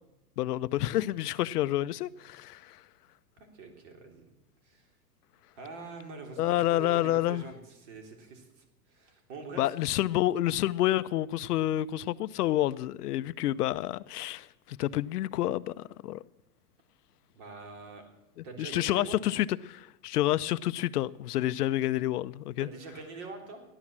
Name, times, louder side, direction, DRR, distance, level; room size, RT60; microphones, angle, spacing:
voice 1, 0.4-2.8 6.4-7.4 9.6-16.2 18.6-22.7, left 14 dB, 85° left, 0.7 m, -29 dB
voice 2, 3.5-4.2 4.6-4.9 5.6-9.7 17.3-18.0 18.4-19.2 22.6-23.6, right 4 dB, 50° right, 3.5 m, -44 dB
15.0 x 11.0 x 7.3 m
supercardioid pair, 165°, 45 cm